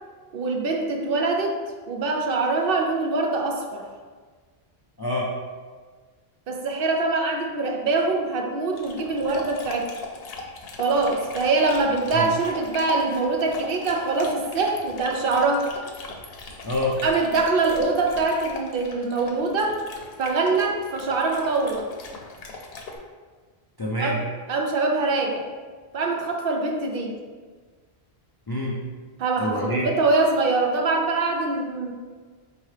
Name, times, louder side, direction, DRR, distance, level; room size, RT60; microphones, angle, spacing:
voice 1, 0.3-1.5 1.9-3.8 6.5-9.9 10.8-15.7 17.0-19.8 20.2-21.9 24.0-24.2 24.5-25.4 25.9-27.1 29.2-31.9, right 3 dB, 65° right, 1 dB, 0.7 m, -23 dB
voice 2, 5.0-5.3 12.1-12.3 16.6-17.0 23.8-24.2 28.5-28.8 29.4-29.9, left 1 dB, 40° left, -4 dB, 0.3 m, -26 dB
Dog, 8.7-23.0, left 3 dB, 70° left, 0.8 m, -39 dB
4.6 x 2.9 x 3.2 m, 1.5 s
omnidirectional pair, 1.1 m